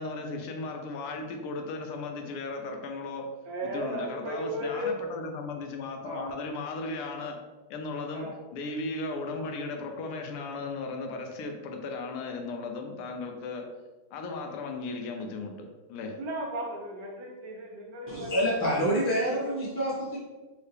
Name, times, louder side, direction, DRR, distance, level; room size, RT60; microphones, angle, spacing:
voice 1, 0.0-3.3 3.6-7.4 7.7-13.7 14.1-16.1, left 3 dB, 85° left, 3 dB, 1.5 m, -36 dB
voice 2, 3.4-4.9 6.0-6.3 8.1-8.3 16.2-18.9, equal, 70° right, -1 dB, 1.2 m, -35 dB
voice 3, 18.1-20.2, equal, 15° right, -8 dB, 0.5 m, -27 dB
4.4 x 2.8 x 3.2 m, 1.2 s
omnidirectional pair, 2.4 m